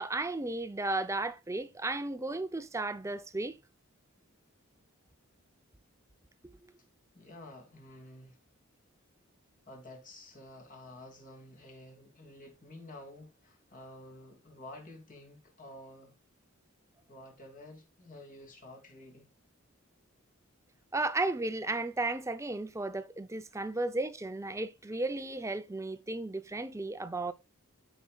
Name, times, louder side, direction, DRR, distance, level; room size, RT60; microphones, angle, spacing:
voice 1, 0.0-3.6 20.9-27.3, right 2 dB, 15° right, 0.5 m, -34 dB
voice 2, 7.1-8.4 9.7-16.1 17.1-19.3 23.5-23.6, left 1 dB, 40° left, 2.6 m, -50 dB
13.5 x 5.1 x 2.3 m
head